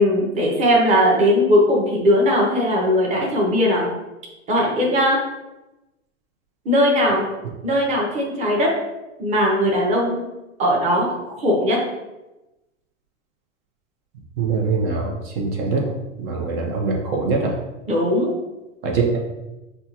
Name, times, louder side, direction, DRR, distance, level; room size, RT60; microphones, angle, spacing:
voice 1, 0.0-3.9 4.5-5.2 6.6-7.2 7.6-8.7 9.2-10.2 10.6-11.8 17.9-18.3, equal, 20° right, -2 dB, 0.8 m, -19 dB
voice 2, 14.4-15.9 16.2-17.5 18.8-19.2, right 4 dB, 50° right, 0 dB, 0.8 m, -23 dB
5.5 x 2.4 x 2.8 m, 1.0 s
hypercardioid pair, 130°, 39 cm